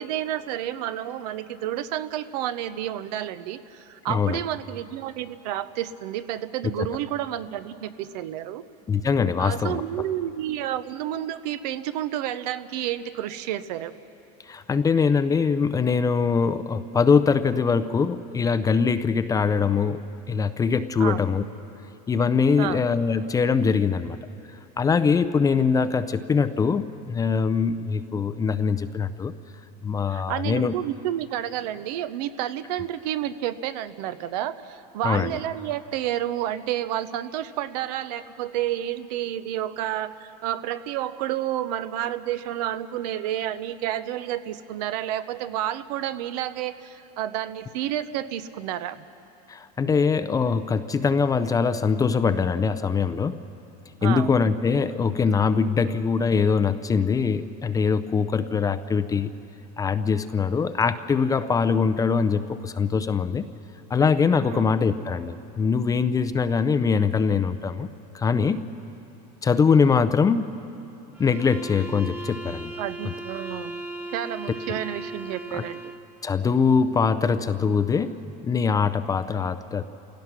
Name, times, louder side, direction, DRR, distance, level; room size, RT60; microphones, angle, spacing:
voice 1, 0.0-8.6 9.4-13.9 21.0-21.2 22.6-22.9 30.1-49.0 54.0-54.5 64.4-64.7 72.8-73.8 74.1-75.8, right 12 dB, 75° right, 13 dB, 0.8 m, -30 dB
voice 2, 4.1-4.4 6.8-6.9 8.9-9.8 14.4-21.4 22.1-24.2 24.8-29.3 29.8-30.7 35.0-35.4 49.5-53.4 54.0-59.3 59.8-63.5 63.9-67.9 68.1-68.7 69.4-70.6 71.2-72.7 73.0-73.1 75.5-75.6 76.2-79.8, left 5 dB, 15° left, 12 dB, 0.5 m, -23 dB
sound 1, 71.1-76.1, right 2 dB, 10° right, 1.5 m, -37 dB
28.5 x 17.0 x 6.0 m, 2.9 s
supercardioid pair, 135°, 21 cm